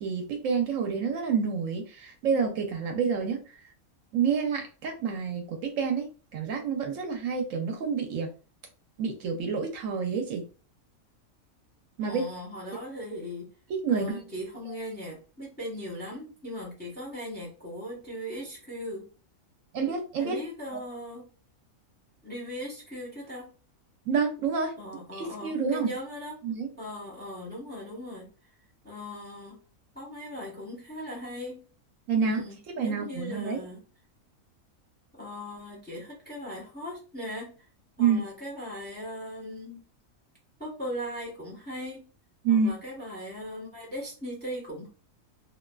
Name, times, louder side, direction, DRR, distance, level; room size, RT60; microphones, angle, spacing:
voice 1, 0.0-3.4 4.1-6.1 6.3-8.3 9.0-10.4 12.0-12.2 13.8-14.2 19.7-20.4 24.1-24.7 25.1-25.9 26.4-26.7 32.1-32.4 32.8-33.6 38.0-38.2 42.4-42.7, right 6 dB, 75° right, 0.9 m, -28 dB
voice 2, 12.0-13.5 13.9-19.0 20.2-21.3 22.2-23.5 24.8-26.4 26.8-28.2 28.8-29.6 29.9-31.6 32.2-33.8 35.1-37.6 38.0-39.8 40.6-42.1 42.5-44.9, equal, 10° left, 0.7 m, -39 dB
2.4 x 2.3 x 2.2 m
omnidirectional pair, 1.4 m